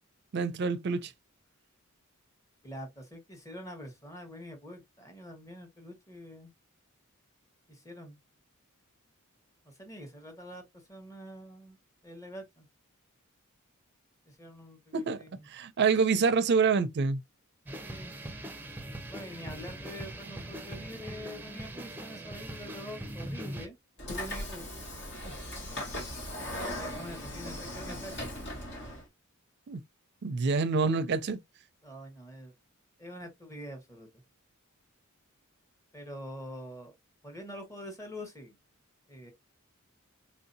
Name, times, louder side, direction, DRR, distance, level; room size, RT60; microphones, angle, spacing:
voice 1, 0.3-1.1 14.9-15.2 15.5-17.2 29.7-29.8 30.2-31.4, right 5 dB, 50° right, 0.4 m, -26 dB
voice 2, 2.6-6.5 7.7-8.2 9.6-10.6 10.9-11.8 12.0-12.7 14.3-15.5 17.8-18.2 19.1-23.8 24.1-24.7 25.2-25.3 26.7-28.3 31.8-32.5 33.0-34.1 35.9-36.9 37.2-38.6 39.1-39.3, equal, 15° left, 1.2 m, -45 dB
sound 1, 17.7-23.7, right 1 dB, 10° right, 0.6 m, -41 dB
Train / Sliding door, 24.0-29.0, left 1 dB, 55° left, 1.5 m, -38 dB
4.3 x 2.7 x 2.6 m
head